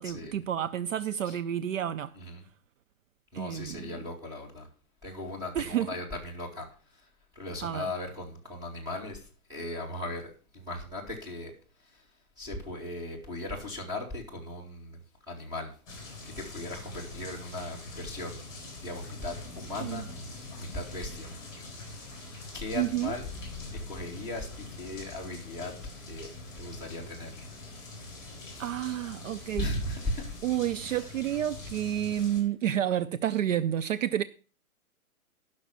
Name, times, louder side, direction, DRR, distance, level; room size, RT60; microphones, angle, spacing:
voice 1, 0.0-2.1 3.3-3.9 5.5-6.0 7.6-7.9 19.8-20.0 22.7-23.1 28.6-29.7 30.4-34.2, right 11 dB, 60° right, 0.6 m, -30 dB
voice 2, 3.3-4.7 5.0-6.6 7.4-9.2 9.5-10.2 10.5-11.5 12.4-15.0 15.3-15.7 16.4-18.3 18.8-20.0 20.6-21.3 22.5-23.2 23.7-25.7 26.1-26.3 26.6-27.3 28.5-28.7 29.6-30.2 30.8-31.0, left 2 dB, 10° right, 2.4 m, -37 dB
sound 1, 15.9-32.4, left 2 dB, 10° left, 5.0 m, -44 dB
11.0 x 6.4 x 7.0 m
hypercardioid pair, 160°, 44 cm